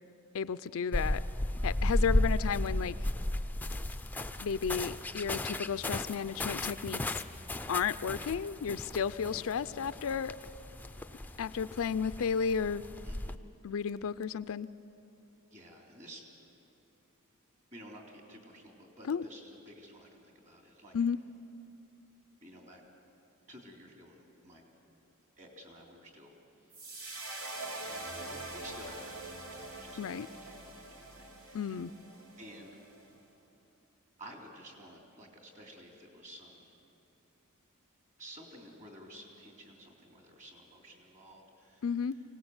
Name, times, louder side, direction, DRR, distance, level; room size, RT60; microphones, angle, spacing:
voice 1, 0.3-1.2 1.6-2.9 4.4-7.1 7.7-10.4 11.4-12.8 13.6-14.7 19.1-19.2 20.9-21.2 30.0-30.3 31.5-31.9 41.8-42.1, left 6 dB, 65° left, 14 dB, 0.4 m, -33 dB
sound 1, 0.9-13.3, left 1 dB, 10° left, 0.5 m, -35 dB
voice 2, 13.0-13.4 15.5-16.2 17.7-21.0 22.4-22.8 23.5-24.6 25.4-26.3 26.6-26.8 28.3-31.8 32.4-32.8 34.2-36.7 38.2-42.2, equal, 35° right, 0 dB, 3.5 m, -53 dB
sound 2, 26.7-33.0, right 2 dB, 80° right, 2.9 m, -44 dB
24.5 x 18.0 x 8.0 m, 2.8 s
head